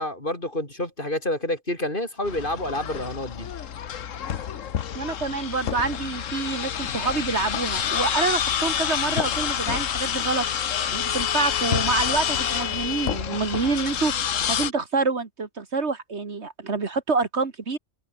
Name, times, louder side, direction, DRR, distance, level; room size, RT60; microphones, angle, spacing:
voice 1, 0.0-3.5, left 1 dB, 40° left, 6.5 m, -28 dB
sound 1, 2.2-14.7, left 9 dB, 80° left, 1.4 m, -27 dB
voice 2, 4.9-17.8, right 4 dB, 60° right, 2.1 m, -27 dB
omnidirectional pair, 1.3 m